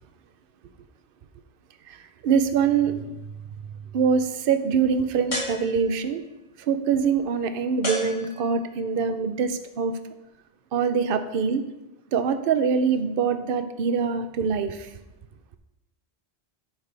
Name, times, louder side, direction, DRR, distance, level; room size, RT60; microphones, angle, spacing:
voice 1, 2.2-3.0 3.9-6.2 6.7-9.9 10.7-11.7 12.1-14.9, right 6 dB, 60° right, 9 dB, 0.8 m, -24 dB
sound 1, 5.3-6.2 7.8-8.8, left 1 dB, 45° left, 2.3 m, -33 dB
9.4 x 7.4 x 3.3 m, 0.94 s
omnidirectional pair, 1.1 m